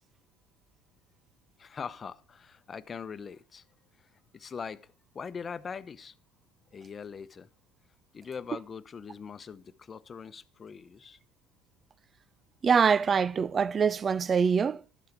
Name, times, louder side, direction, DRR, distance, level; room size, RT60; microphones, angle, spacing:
voice 1, 1.6-3.6 4.0-6.1 6.7-7.5 8.1-11.2, left 6 dB, 35° left, 0.9 m, -42 dB
voice 2, 12.6-14.8, right 6 dB, 35° right, 0.4 m, -24 dB
12.0 x 8.1 x 5.1 m
hypercardioid pair, 80°, 0 cm